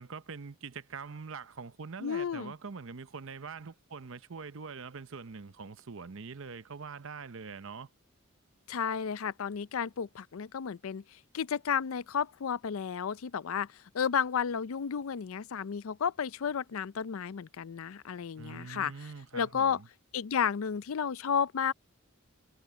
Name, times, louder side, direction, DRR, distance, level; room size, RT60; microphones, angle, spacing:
voice 1, 0.0-7.9 18.4-19.9, right 5 dB, 65° right, 0.7 m, -44 dB
voice 2, 2.0-2.5 8.7-18.9 19.3-19.8 20.1-21.7, left 7 dB, 70° left, 0.5 m, -32 dB
head